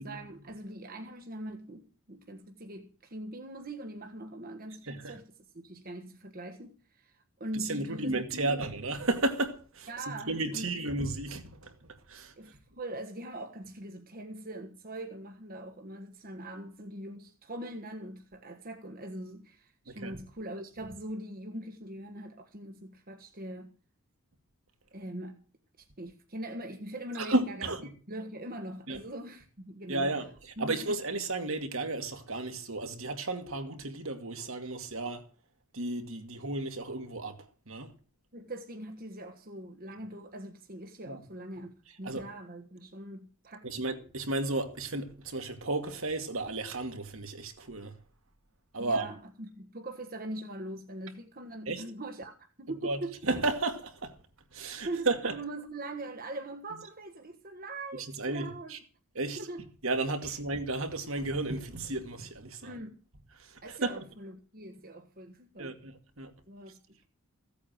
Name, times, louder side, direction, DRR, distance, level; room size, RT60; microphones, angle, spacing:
voice 1, 0.0-8.7 9.9-10.7 12.3-23.7 24.9-25.4 25.8-30.1 30.6-30.8 38.3-43.7 48.8-53.2 54.8-58.8 59.4-59.6 62.6-63.0 63.6-65.8 66.5-67.1, right 1 dB, 40° right, 1.4 m, -42 dB
voice 2, 7.6-9.9 10.3-11.7 12.1-12.3 19.9-20.2 27.1-27.8 28.9-29.0 29.9-35.2 35.7-37.4 37.7-37.9 41.1-41.2 42.0-42.3 43.6-47.9 48.7-49.1 51.7-51.8 52.8-54.1 54.5-55.3 58.1-58.8 59.2-59.4 59.8-62.7 63.4-64.0 65.6-66.3, right 2 dB, 65° right, 2.3 m, -33 dB
16.0 x 8.5 x 7.5 m
head